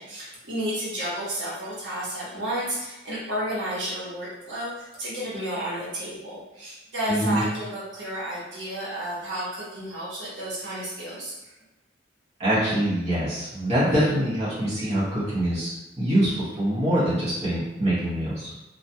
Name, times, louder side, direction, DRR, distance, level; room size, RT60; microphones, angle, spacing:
voice 1, 0.0-11.3 13.9-14.1, right 1 dB, 85° right, -8 dB, 0.9 m, -32 dB
voice 2, 7.1-7.4 12.4-15.7 16.0-18.5, right 1 dB, 35° right, -10 dB, 0.9 m, -24 dB
2.2 x 2.2 x 2.7 m, 0.97 s
head